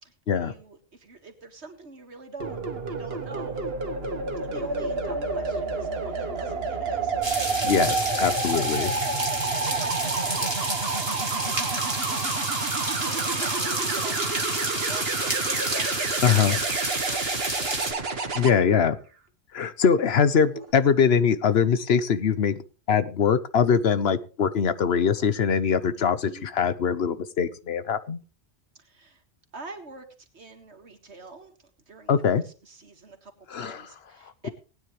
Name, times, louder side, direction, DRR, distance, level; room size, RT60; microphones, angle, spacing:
voice 1, 0.0-2.6 2.9-3.6 4.4-7.1 8.1-8.3 9.0-12.6 13.0-18.1 26.3-26.5 28.7-29.2 29.5-31.6 31.9-34.5, right 3 dB, 85° right, 5 dB, 2.2 m, -45 dB
sound 1, 2.4-18.5 20.4-20.7, right 3 dB, 65° right, 1.6 m, -29 dB
sound 2, 7.2-17.9, right 2 dB, 25° right, 1.9 m, -30 dB
voice 2, 7.6-8.9 16.2-16.6 18.3-18.9 19.5-22.5 22.9-28.2 32.1-32.4 33.5-33.9, left 6 dB, 70° left, 14 dB, 1.1 m, -22 dB
19.0 x 9.5 x 3.2 m, 0.35 s
omnidirectional pair, 1.1 m